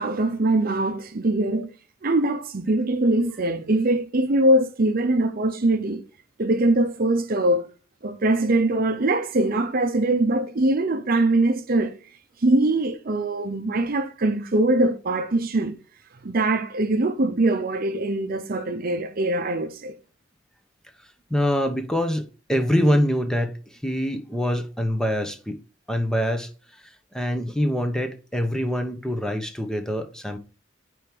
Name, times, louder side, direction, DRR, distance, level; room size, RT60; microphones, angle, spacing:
voice 1, 0.0-1.7 2.0-6.0 6.4-7.7 8.0-11.9 12.4-15.8 16.2-20.0, right 2 dB, 45° right, 0.7 m, -22 dB
voice 2, 21.3-25.6 25.9-30.4, equal, 5° left, 0.8 m, -25 dB
5.1 x 4.6 x 5.9 m
head